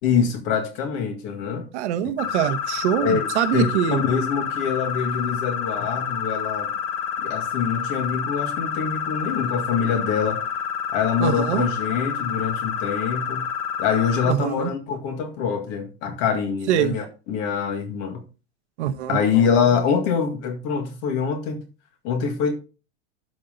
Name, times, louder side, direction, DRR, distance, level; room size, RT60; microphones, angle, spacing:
voice 1, 0.0-1.7 3.0-6.7 7.2-10.4 10.9-13.5 13.8-18.3 19.1-21.6 22.0-22.5, left 6 dB, 40° left, 2.0 m, -24 dB
voice 2, 1.7-4.0 11.2-11.7 14.2-14.7 16.7-17.0 18.8-19.2, right 10 dB, 70° right, 1.2 m, -23 dB
sound 1, 2.2-14.3, left 8 dB, 25° left, 0.5 m, -28 dB
12.0 x 5.7 x 3.9 m
supercardioid pair, 180°, 36 cm